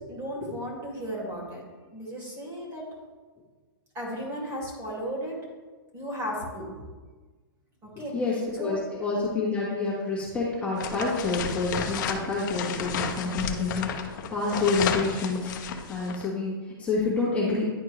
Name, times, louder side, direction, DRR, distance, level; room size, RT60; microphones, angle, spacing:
voice 1, 0.1-1.6 1.9-2.8 3.9-5.3 5.9-6.8 7.8-8.2 8.6-8.8 9.2-9.3, equal, 20° right, -3 dB, 2.1 m, -35 dB
voice 2, 8.1-17.7, left 3 dB, 10° left, -7 dB, 1.5 m, -28 dB
sound 1, 10.8-16.3, left 7 dB, 55° left, 0.8 m, -32 dB
10.5 x 4.3 x 3.1 m, 1.4 s
hypercardioid pair, 150°, 12 cm